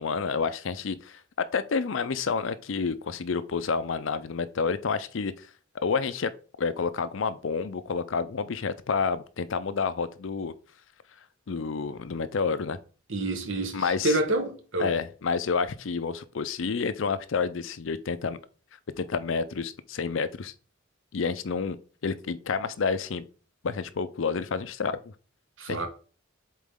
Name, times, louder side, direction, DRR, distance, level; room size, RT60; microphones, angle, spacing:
voice 1, 0.0-5.5 5.8-6.3 6.6-10.5 11.5-12.8 13.7-14.2 14.8-18.4 19.0-20.5 21.1-21.8 22.0-23.2 23.6-25.0 25.7-25.9, left 5 dB, 70° left, 0.5 m, -29 dB
voice 2, 13.1-15.0 25.6-25.9, right 2 dB, 70° right, 1.3 m, -28 dB
7.4 x 4.0 x 3.7 m
head